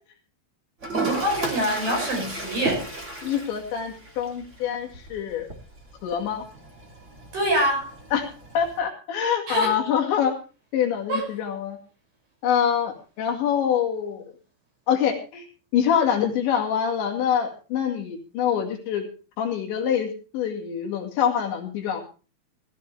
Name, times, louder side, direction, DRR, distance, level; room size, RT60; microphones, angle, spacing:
Toilet flush, 0.8-8.8, right 2 dB, 20° right, 2.4 m, -34 dB
voice 1, 1.0-2.9 7.3-7.9 9.5-9.7 11.1-11.2, right 1 dB, 45° right, 1 dB, 7.8 m, -25 dB
voice 2, 3.2-5.5 6.0-6.4 8.1-8.3 8.5-10.4 10.7-11.8 12.4-14.2 14.9-15.5 15.7-19.0 19.4-22.0, left 8 dB, 70° left, 2 dB, 4.4 m, -25 dB
18.5 x 13.5 x 3.3 m, 0.34 s
omnidirectional pair, 5.6 m